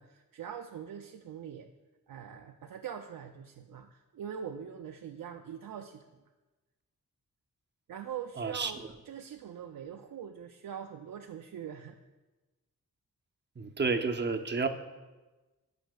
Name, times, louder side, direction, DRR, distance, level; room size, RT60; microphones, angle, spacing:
voice 1, 0.0-1.7 2.1-6.2 7.9-8.8 9.1-12.0, right 8 dB, 75° right, 4 dB, 0.5 m, -43 dB
voice 2, 8.4-8.9 13.6-14.7, right 4 dB, 30° right, 6 dB, 0.6 m, -31 dB
15.5 x 5.2 x 2.3 m, 1.2 s
wide cardioid pair, 90°, 34 cm